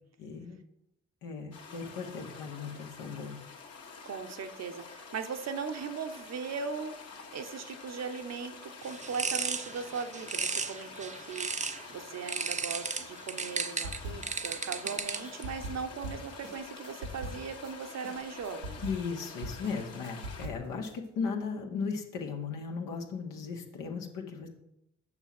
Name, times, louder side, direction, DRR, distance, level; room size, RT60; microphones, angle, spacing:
voice 1, 0.2-0.6 1.2-3.3 18.8-24.5, left 5 dB, 65° left, 1 dB, 1.9 m, -36 dB
sound 1, 1.5-20.5, left 5 dB, 45° left, 1.9 m, -48 dB
voice 2, 4.0-7.0 7.3-18.8, right 5 dB, 45° right, 7 dB, 1.1 m, -39 dB
sound 2, 8.8-11.9 12.3-15.4, right 5 dB, 20° right, 0.7 m, -35 dB
sound 3, 13.8-14.5 14.8-17.7 18.0-20.9, right 1 dB, 85° right, 1.4 m, -42 dB
8.8 x 6.1 x 6.1 m, 0.79 s
figure-of-eight pair, 45°, 36 cm